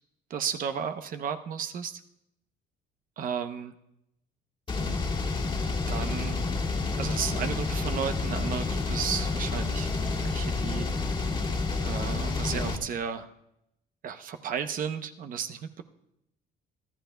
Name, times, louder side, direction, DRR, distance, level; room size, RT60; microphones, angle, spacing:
voice 1, 0.3-2.0 3.2-3.7 5.9-6.4 7.0-9.9 10.2-10.9 11.2-11.3 11.8-13.3 14.0-15.8, right 7 dB, 55° right, 9 dB, 0.8 m, -33 dB
sound 1, 4.7-12.8, left 3 dB, 30° left, 1.9 m, -29 dB
24.5 x 12.5 x 2.2 m, 0.82 s
cardioid pair, 110°, 17 cm